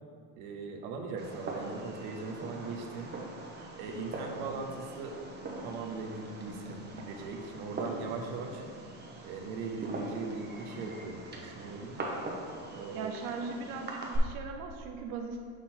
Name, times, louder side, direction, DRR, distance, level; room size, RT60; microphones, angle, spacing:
voice 1, 0.4-3.1 3.7-5.2 5.6-8.6 9.2-12.0 12.7-13.1, right 4 dB, 85° right, 3 dB, 0.9 m, -39 dB
Fireworks, 1.2-14.2, right 2 dB, 25° right, 0.8 m, -42 dB
sound 1, 3.6-12.7, left 1 dB, 5° left, 0.4 m, -52 dB
voice 2, 12.9-15.4, right 5 dB, 55° right, 3 dB, 0.6 m, -39 dB
6.4 x 4.2 x 3.8 m, 2.2 s
cardioid pair, 125°, 41 cm